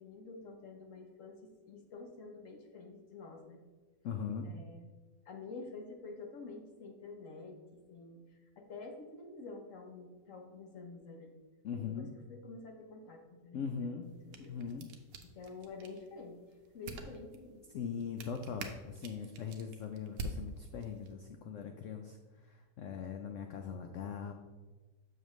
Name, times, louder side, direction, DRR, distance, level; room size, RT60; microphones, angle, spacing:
voice 1, 0.0-3.6 4.4-4.8 5.3-8.2 8.6-11.3 11.7-14.5 15.3-16.4 16.7-17.6, left 3 dB, 55° left, 3 dB, 1.0 m, -49 dB
voice 2, 4.0-4.5 11.6-12.1 13.5-14.1 14.4-14.9 17.7-24.3, left 6 dB, 80° left, 5 dB, 0.6 m, -40 dB
sound 1, 14.0-21.1, right 2 dB, 65° right, 1.0 m, -48 dB
6.9 x 6.4 x 3.1 m, 1.3 s
omnidirectional pair, 1.9 m